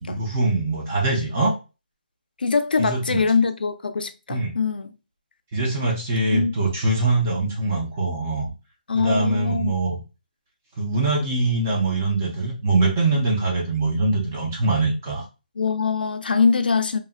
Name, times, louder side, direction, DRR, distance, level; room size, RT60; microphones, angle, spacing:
voice 1, 0.0-1.6 2.8-3.2 4.3-4.5 5.5-8.5 8.9-10.0 10.8-15.2, right 2 dB, 10° right, 0.3 m, -23 dB
voice 2, 2.4-4.9 6.3-6.7 8.9-9.7 15.6-17.0, left 5 dB, 70° left, 0.4 m, -23 dB
2.9 x 2.4 x 2.4 m
hypercardioid pair, 175°, 5 cm